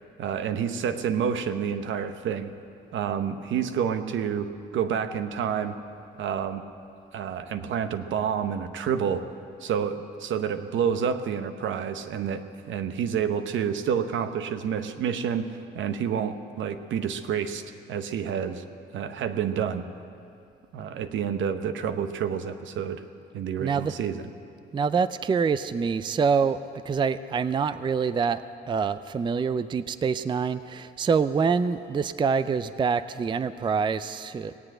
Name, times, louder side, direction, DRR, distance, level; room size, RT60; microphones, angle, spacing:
voice 1, 0.2-2.5 2.9-5.7 6.2-6.6 7.1-9.2 9.6-15.5 15.7-17.6 17.9-18.6 18.9-19.8 20.7-23.0 23.3-24.3, right 7 dB, 75° right, 9 dB, 0.8 m, -29 dB
voice 2, 23.6-23.9 24.7-26.6 26.9-28.4 28.7-34.5, right 5 dB, 25° right, 14 dB, 0.4 m, -25 dB
18.5 x 7.8 x 8.9 m, 2.6 s
cardioid pair, 90°, 20 cm